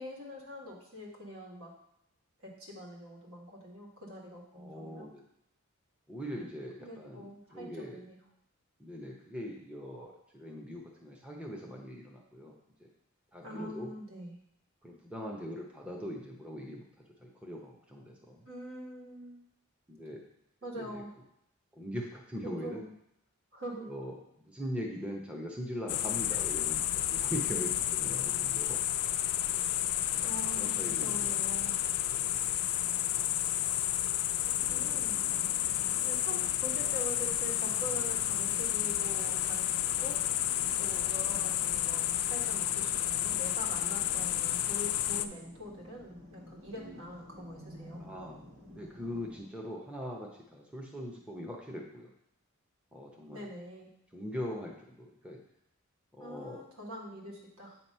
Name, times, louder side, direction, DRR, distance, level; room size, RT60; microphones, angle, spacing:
voice 1, 0.0-1.7 2.4-5.1 6.8-8.2 13.4-14.4 18.5-19.5 20.6-21.2 22.4-22.9 23.5-23.9 30.2-31.7 34.7-35.3 35.6-40.2 40.8-48.1 53.3-53.9 56.2-57.8, equal, 70° right, -2 dB, 1.7 m, -44 dB
voice 2, 4.5-5.2 6.1-7.2 7.5-8.0 8.8-12.5 12.8-12.9 13.3-13.9 14.8-16.9 17.2-18.4 19.9-20.2 20.8-21.0 21.7-22.9 23.8-28.8 30.1-30.3 30.6-31.3 32.1-32.4 40.8-41.0 46.7-47.0 48.0-48.4 48.7-52.1 52.9-53.5 54.1-55.4 56.1-56.6, equal, 5° right, -2 dB, 0.6 m, -41 dB
sound 1, 25.9-45.3, left 12 dB, 85° left, 0.4 m, -31 dB
sound 2, 34.5-49.5, left 1 dB, 90° right, 2.0 m, -52 dB
7.9 x 2.9 x 5.4 m, 0.76 s
head